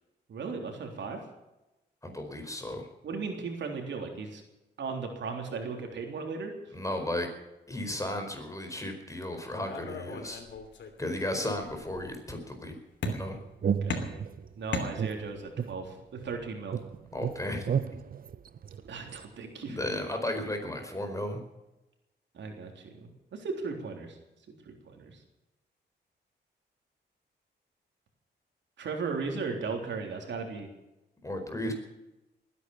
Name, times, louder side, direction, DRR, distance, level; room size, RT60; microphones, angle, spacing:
voice 1, 0.3-1.2 3.0-4.4 4.8-6.5 13.8-14.2 14.6-16.8 18.9-19.8 22.3-24.2 24.7-25.2 28.8-30.7, right 4 dB, 80° right, 3 dB, 3.5 m, -36 dB
voice 2, 2.0-2.9 6.7-7.3 7.7-10.4 11.0-12.8 13.1-13.4 17.1-18.0 19.7-21.4 31.2-31.7, left 1 dB, 15° left, 5 dB, 4.6 m, -34 dB
sound 1, 9.6-11.0 11.3-12.1 13.0-13.5 13.9-15.5, left 4 dB, 80° left, 2.9 m, -37 dB
sound 2, 13.0-14.5 15.0-16.4 16.7-19.2, right 7 dB, 50° right, 0.7 m, -33 dB
20.5 x 9.8 x 7.2 m, 0.97 s
cardioid pair, 80°, 19 cm